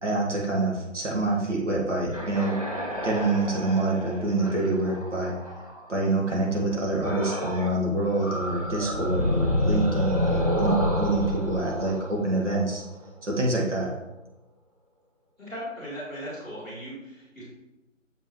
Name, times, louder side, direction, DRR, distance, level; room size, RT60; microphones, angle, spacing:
voice 1, 0.0-2.5 3.0-5.3 5.9-12.8 13.2-13.9, right 2 dB, 65° right, -3 dB, 1.8 m, -26 dB
sound 1, 2.1-5.9 7.0-7.8 8.0-12.9, left 1 dB, 30° right, 0.7 m, -29 dB
voice 2, 15.4-17.4, equal, 5° right, -18 dB, 1.9 m, -38 dB
7.5 x 5.2 x 3.1 m, 1.0 s
figure-of-eight pair, 160°, 39 cm